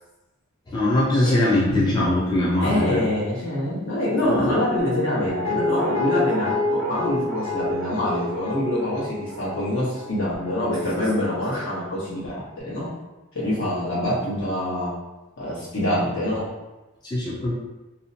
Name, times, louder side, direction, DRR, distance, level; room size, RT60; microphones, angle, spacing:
voice 1, 0.7-3.0 4.2-4.6 17.0-17.5, left 1 dB, 20° left, -6 dB, 0.4 m, -21 dB
Drum, 1.7-3.7, left 1 dB, 50° right, 0.5 m, -36 dB
voice 2, 2.6-12.9 13.3-14.9 15.4-16.5, left 1 dB, 65° left, -8 dB, 1.0 m, -25 dB
Guitar, 4.8-11.8 12.1-12.2, left 1 dB, 90° left, 1.1 m, -29 dB
2.6 x 2.1 x 2.6 m, 1.1 s
head